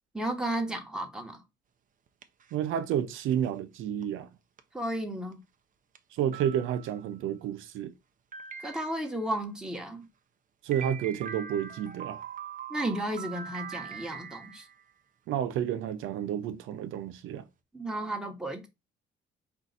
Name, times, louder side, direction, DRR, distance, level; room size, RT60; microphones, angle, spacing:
voice 1, 0.1-1.4 4.7-5.4 8.6-10.1 12.7-14.7 17.7-18.7, right 1 dB, 5° right, 1.2 m, -33 dB
sound 1, 2.1-2.7 3.3-3.5 4.0-4.1 4.6-4.7 5.3-5.4 6.0-6.1 6.3-7.1 8.3-9.2 10.7-14.9, right 7 dB, 40° right, 0.6 m, -43 dB
voice 2, 2.5-4.3 6.1-7.9 10.6-12.2 15.3-17.4, right 9 dB, 90° right, 0.6 m, -30 dB
4.6 x 2.5 x 4.0 m
cardioid pair, 90°, 20 cm